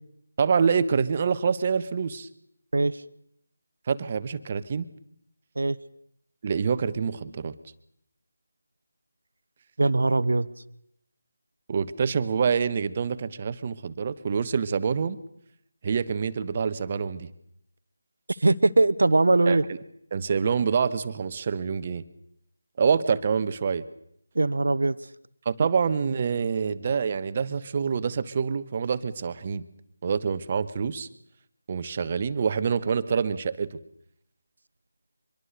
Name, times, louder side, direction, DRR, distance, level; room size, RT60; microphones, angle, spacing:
voice 1, 0.4-2.3 3.9-4.9 6.4-7.5 11.7-15.2 15.8-17.3 19.5-19.8 20.1-22.0 22.8-23.8 25.4-29.6 30.0-31.1 31.7-33.8, right 6 dB, 35° right, 13 dB, 1.3 m, -26 dB
voice 2, 9.8-10.5 18.4-19.6 24.3-25.0, right 2 dB, 60° right, 16 dB, 1.2 m, -21 dB
25.0 x 22.5 x 6.7 m, 0.73 s
figure-of-eight pair, 160°, 0 cm